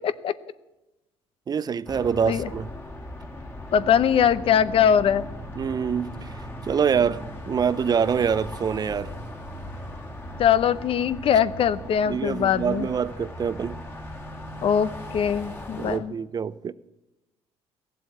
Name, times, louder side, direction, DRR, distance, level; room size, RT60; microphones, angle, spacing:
voice 1, 1.5-2.7 5.5-9.1 12.0-13.8 15.8-16.7, right 7 dB, 35° right, 0.5 m, -25 dB
sound 1, 1.9-16.0, left 1 dB, 20° left, 2.0 m, -38 dB
voice 2, 3.7-5.2 10.4-12.9 14.6-16.1, left 8 dB, 55° left, 0.7 m, -21 dB
15.5 x 7.8 x 9.4 m
cardioid pair, 90°, 11 cm